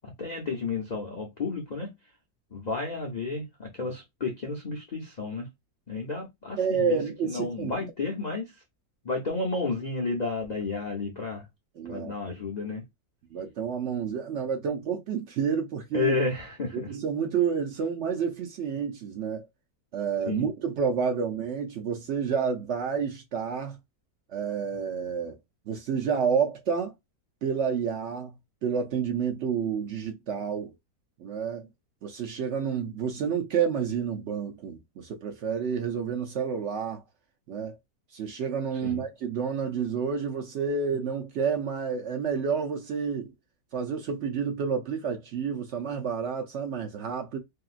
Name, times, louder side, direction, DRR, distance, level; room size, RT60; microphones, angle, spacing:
voice 1, 0.0-1.9 2.5-5.5 5.9-8.5 9.0-11.5 11.8-12.8 15.9-16.9 20.3-20.5 38.8-39.0, left 3 dB, 85° left, 0.3 m, -32 dB
voice 2, 6.6-7.7 11.8-12.1 13.3-16.1 16.7-19.5 19.9-23.8 24.3-25.4 25.7-26.9 27.4-28.3 28.6-30.7 31.2-31.7 32.0-37.0 37.5-37.8 38.1-43.3 43.7-47.4, right 6 dB, 70° right, 0.6 m, -29 dB
2.9 x 2.7 x 2.4 m
omnidirectional pair, 1.7 m